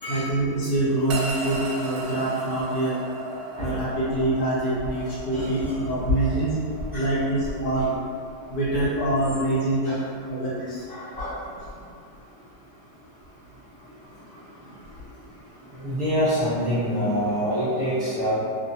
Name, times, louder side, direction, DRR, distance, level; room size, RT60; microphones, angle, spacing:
voice 1, 0.1-3.0 3.6-6.6 6.9-7.9 8.5-10.0 10.3-10.8, right 2 dB, 70° left, -8 dB, 1.1 m, -25 dB
sound 1, 1.1-11.4, right 1 dB, 75° right, 1.1 m, -37 dB
voice 2, 5.3-5.7 6.9-7.1 9.8-9.9 10.9-11.3 15.8-18.3, equal, 30° right, -15 dB, 1.1 m, -26 dB
2.8 x 2.1 x 2.6 m, 2.3 s
omnidirectional pair, 1.8 m